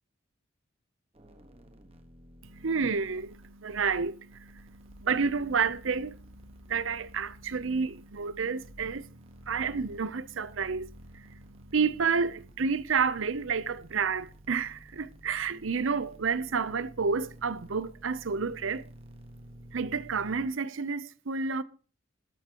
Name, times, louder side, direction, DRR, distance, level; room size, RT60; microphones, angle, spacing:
sound 1, 1.1-20.5, equal, 30° right, 1.4 m, -52 dB
voice 1, 2.4-18.8 19.7-21.6, right 5 dB, 70° right, 0.7 m, -30 dB
13.0 x 12.5 x 3.0 m
head